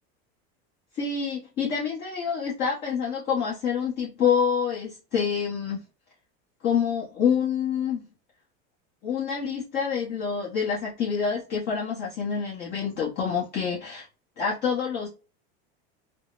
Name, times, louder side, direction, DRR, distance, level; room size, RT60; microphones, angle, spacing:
voice 1, 0.9-5.8 6.6-8.0 9.0-14.1 14.4-15.1, left 7 dB, 30° left, 0.9 m, -27 dB
3.6 x 2.0 x 2.3 m
supercardioid pair, 155°, 32 cm